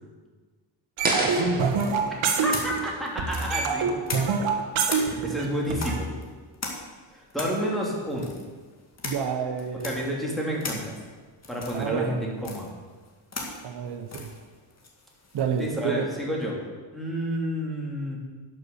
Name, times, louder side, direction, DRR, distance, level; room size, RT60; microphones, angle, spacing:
sound 1, 1.0-4.1, right 2 dB, 20° right, 2.2 m, -32 dB
sound 2, 1.0-2.9 3.2-6.0, right 5 dB, 70° right, 1.7 m, -25 dB
voice 1, 1.2-1.8 4.4-4.5 9.0-10.0 11.7-12.2 13.6-14.3 15.3-16.1, right 6 dB, 55° right, 4 dB, 1.1 m, -29 dB
sound 3, 1.7-4.5 4.9-15.8, left 3 dB, 30° left, 2.1 m, -39 dB
voice 2, 2.4-3.9 4.9-6.1 7.1-8.3 9.8-10.9 11.5-12.7 15.6-16.6 16.9-18.2, equal, ahead, -3 dB, 3.0 m, -30 dB
10.5 x 6.7 x 7.0 m, 1.4 s
cardioid pair, 115°, 48 cm